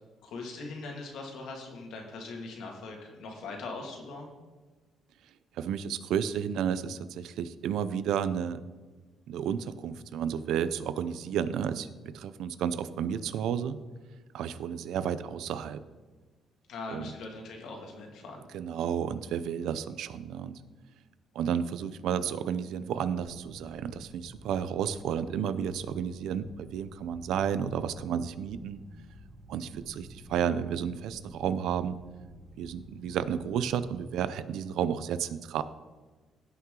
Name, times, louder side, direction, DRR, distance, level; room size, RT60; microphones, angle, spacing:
voice 1, 0.2-4.3 16.7-18.4, left 3 dB, 75° left, 1 dB, 2.1 m, -41 dB
voice 2, 5.6-8.6 9.3-11.9 12.1-13.8 14.3-15.8 16.9-17.1 18.5-20.6 21.3-28.8 29.5-32.0 32.6-35.6, right 8 dB, 80° right, 14 dB, 0.5 m, -32 dB
sound 1, 23.2-33.9, equal, 25° right, 1.4 m, -51 dB
16.5 x 5.8 x 3.8 m, 1.3 s
cardioid pair, 135°, 0 cm